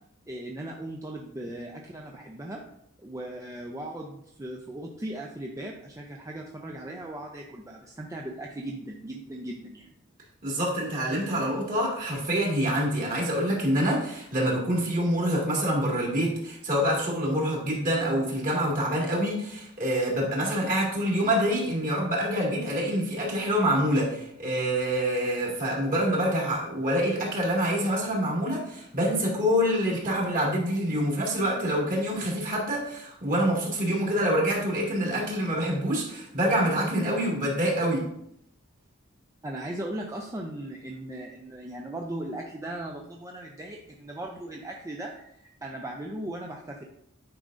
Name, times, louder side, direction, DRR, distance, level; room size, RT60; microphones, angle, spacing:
voice 1, 0.3-2.6 3.0-9.9 39.4-45.3 45.6-46.8, right 1 dB, 15° right, 0 dB, 0.5 m, -38 dB
voice 2, 10.4-38.0, equal, 40° right, -3 dB, 2.1 m, -26 dB
8.8 x 5.0 x 2.6 m, 0.74 s
head